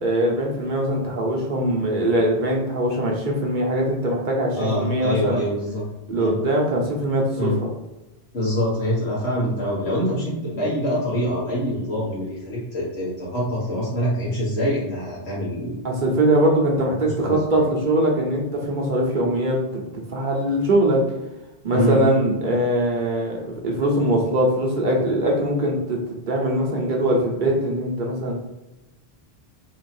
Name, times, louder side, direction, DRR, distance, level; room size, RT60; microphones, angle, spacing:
voice 1, 0.0-5.5 6.1-7.7 15.8-19.8 20.1-21.0 21.6-26.0 26.3-28.4, right 1 dB, 50° right, -1 dB, 1.1 m, -22 dB
voice 2, 4.5-5.8 6.2-6.3 7.4-7.5 8.3-15.7 16.8-17.4 21.7-22.0, equal, 80° left, -7 dB, 2.0 m, -25 dB
4.1 x 2.8 x 4.3 m, 1.0 s
omnidirectional pair, 1.1 m